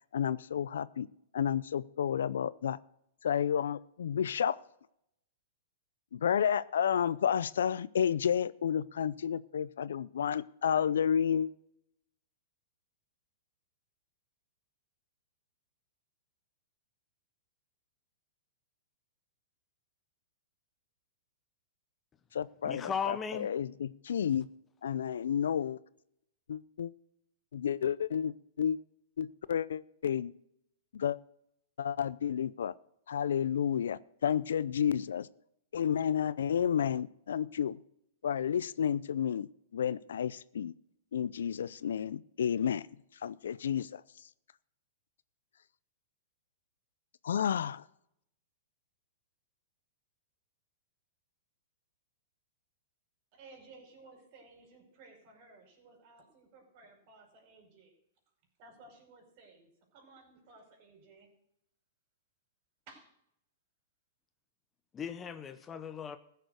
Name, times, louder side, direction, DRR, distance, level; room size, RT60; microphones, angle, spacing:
voice 1, 0.1-1.1 1.3-2.8 3.2-4.6 6.1-11.5 22.3-24.5 24.8-25.8 26.5-26.9 27.5-28.8 29.2-30.3 30.9-31.2 31.8-32.7 33.1-35.3 35.7-37.8 38.2-39.5 39.7-40.7 41.1-42.8 43.2-44.0 47.2-47.8, left 8 dB, 75° left, 0.5 m, -31 dB
voice 2, 22.6-23.5 64.9-66.2, left 7 dB, 20° left, 0.8 m, -37 dB
voice 3, 53.3-57.9 58.6-61.3 62.9-63.1, right 3 dB, 50° right, 5.2 m, -57 dB
15.5 x 6.8 x 6.4 m
hypercardioid pair, 115°, 0 cm